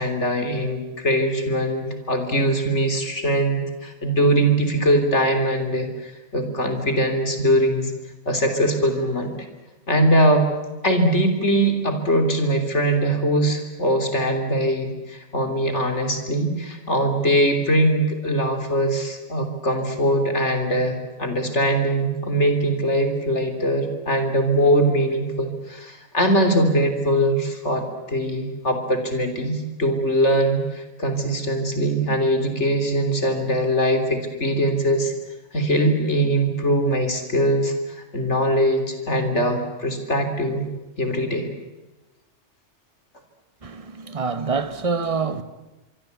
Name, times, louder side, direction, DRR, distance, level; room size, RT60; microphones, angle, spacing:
voice 1, 0.0-7.9 8.3-9.4 9.9-10.5 10.8-35.1 35.5-37.7 38.1-40.7 41.0-41.5, right 1 dB, 70° left, 3.8 m, -21 dB
voice 2, 43.6-45.4, right 5 dB, 30° right, 1.3 m, -26 dB
25.0 x 24.0 x 8.3 m
omnidirectional pair, 1.2 m